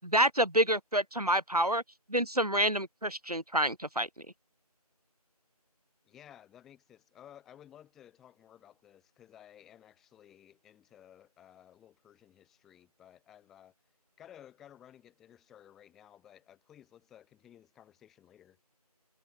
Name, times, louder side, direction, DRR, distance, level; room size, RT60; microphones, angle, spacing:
voice 1, 0.0-1.8 2.1-4.1, right 1 dB, 70° right, 8.0 m, -28 dB
voice 2, 6.0-13.7 14.2-18.6, left 10 dB, ahead, 7.7 m, -56 dB
figure-of-eight pair, 175°, 20 cm